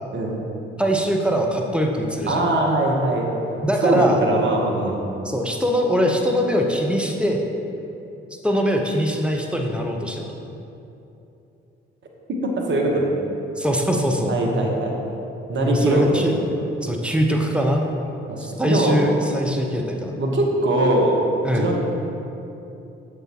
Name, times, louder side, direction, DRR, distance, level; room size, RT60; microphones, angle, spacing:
voice 1, 0.1-0.4 2.3-3.4 3.8-5.0 12.3-13.1 14.3-14.9 15.5-16.3 18.3-19.0 20.2-21.2 21.5-21.8, right 1 dB, 40° right, -1 dB, 1.2 m, -21 dB
voice 2, 0.8-2.4 3.6-4.2 5.2-7.4 8.4-10.4 13.6-14.3 15.6-16.3 16.8-17.9 18.4-20.1 21.4-21.7, equal, 5° right, 1 dB, 0.8 m, -22 dB
6.7 x 6.3 x 3.0 m, 2.9 s
hypercardioid pair, 45°, 29 cm